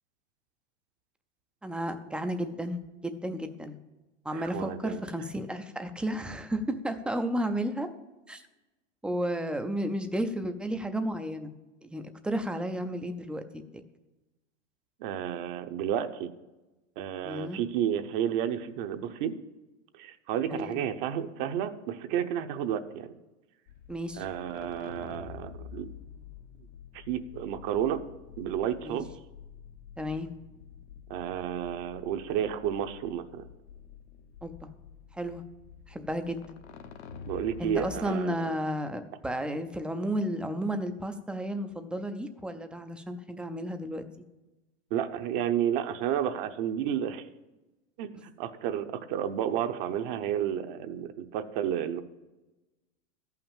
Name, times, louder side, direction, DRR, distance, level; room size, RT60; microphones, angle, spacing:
voice 1, 1.6-3.8 4.2-7.9 8.3-8.4 9.0-11.5 11.8-13.8 17.2-17.6 20.5-20.7 23.9-24.2 28.8-29.0 30.0-30.3 34.4-34.7 35.1-35.4 35.9-36.4 37.6-44.1, equal, 5° right, 7 dB, 0.4 m, -33 dB
voice 2, 4.3-5.0 15.0-16.3 17.0-19.4 19.9-23.1 24.2-25.9 26.9-28.0 28.4-29.1 31.1-33.5 37.3-38.3 44.9-47.3 48.0-52.0, right 9 dB, 50° right, 8 dB, 0.8 m, -31 dB
sound 1, 23.7-38.1, left 7 dB, 70° left, 1.0 m, -48 dB
13.5 x 5.8 x 7.2 m, 1.1 s
supercardioid pair, 140°, 34 cm